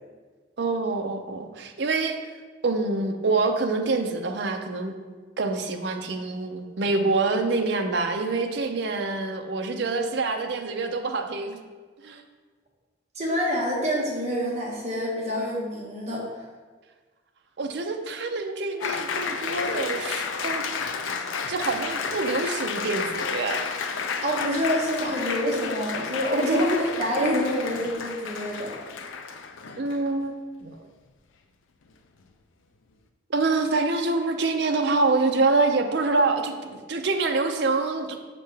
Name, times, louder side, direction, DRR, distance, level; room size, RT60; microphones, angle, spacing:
voice 1, 0.6-2.2 2.6-5.0 5.4-11.6 12.0-12.2 17.6-20.7 21.5-23.6 29.8-30.8 33.3-38.2, right 3 dB, 60° right, 5 dB, 0.5 m, -26 dB
voice 2, 13.1-16.4 24.2-28.8, equal, 35° right, -4 dB, 1.3 m, -26 dB
Applause, 18.8-30.1, left 5 dB, 90° left, 0.5 m, -31 dB
6.6 x 5.1 x 3.4 m, 1.4 s
head